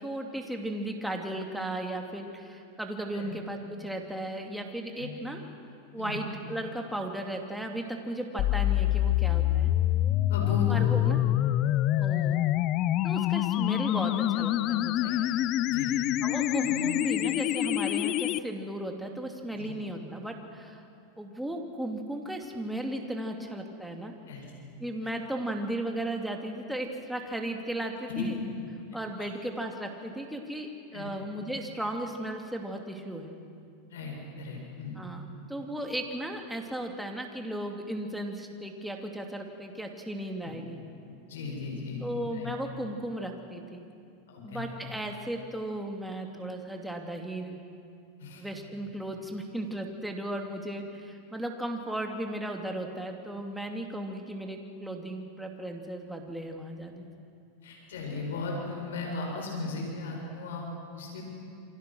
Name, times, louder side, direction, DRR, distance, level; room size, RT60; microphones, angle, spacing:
voice 1, 0.0-5.4 5.9-9.7 10.7-11.2 12.0-12.4 13.0-15.1 16.2-20.8 21.2-24.1 24.8-28.4 28.9-33.3 35.0-40.8 42.0-43.8 44.4-47.6 48.4-57.1, right 1 dB, ahead, 2 dB, 2.6 m, -36 dB
sound 1, 8.4-18.4, left 14 dB, 45° left, 0.6 m, -26 dB
voice 2, 10.3-11.2 15.0-15.2 15.7-15.9 16.6-16.9 19.6-19.7 24.3-24.4 28.1-28.2 29.2-29.3 30.9-31.2 33.9-35.0 40.4-40.5 41.0-42.0 42.3-42.5 44.3-44.6 48.2-48.4 57.6-61.2, left 4 dB, 90° left, -1 dB, 7.4 m, -36 dB
28.5 x 25.0 x 6.3 m, 2.5 s
supercardioid pair, 130°, 0 cm